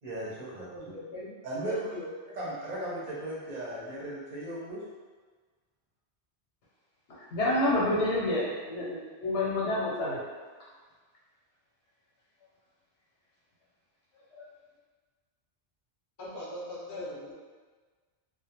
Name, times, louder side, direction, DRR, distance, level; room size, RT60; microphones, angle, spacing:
voice 1, 0.0-0.7 1.4-1.9 2.3-4.8, right 1 dB, 50° right, -6 dB, 0.6 m, -36 dB
voice 2, 0.7-1.3 1.6-2.3 16.2-17.3, left 1 dB, 25° left, -7 dB, 0.4 m, -40 dB
voice 3, 7.3-10.2 14.3-14.4, left 1 dB, 85° left, -7 dB, 1.0 m, -28 dB
2.3 x 2.1 x 2.8 m, 1.4 s
omnidirectional pair, 1.1 m